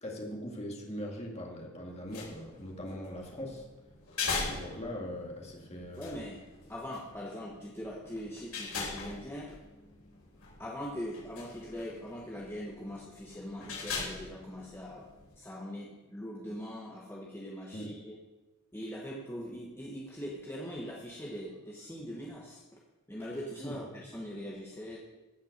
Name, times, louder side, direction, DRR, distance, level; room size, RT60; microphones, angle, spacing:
voice 1, 0.0-3.7 4.2-6.2 17.7-17.9 23.6-24.1, equal, 30° left, 0 dB, 2.2 m, -41 dB
sound 1, 1.9-15.3, left 4 dB, 80° left, 4.6 m, -42 dB
voice 2, 6.0-6.4 6.7-9.6 10.6-15.1 15.4-18.2 18.7-22.8 23.1-25.0, equal, 10° left, -3 dB, 1.2 m, -41 dB
16.0 x 5.7 x 6.6 m, 1.1 s
head